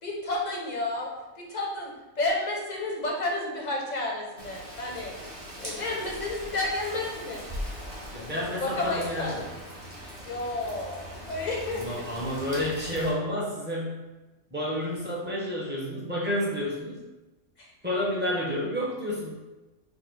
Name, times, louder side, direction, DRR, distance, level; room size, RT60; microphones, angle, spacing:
voice 1, 0.0-5.1 5.6-7.4 8.6-9.3 10.2-12.0 17.6-17.7, left 2 dB, 40° left, -2 dB, 0.7 m, -31 dB
Rain, 4.4-13.1, equal, 30° right, 1.0 m, -40 dB
voice 2, 8.1-9.5 11.8-14.0 14.5-17.0 17.8-19.3, left 1 dB, 10° right, -5 dB, 0.7 m, -30 dB
4.3 x 2.0 x 4.5 m, 1.1 s
omnidirectional pair, 1.4 m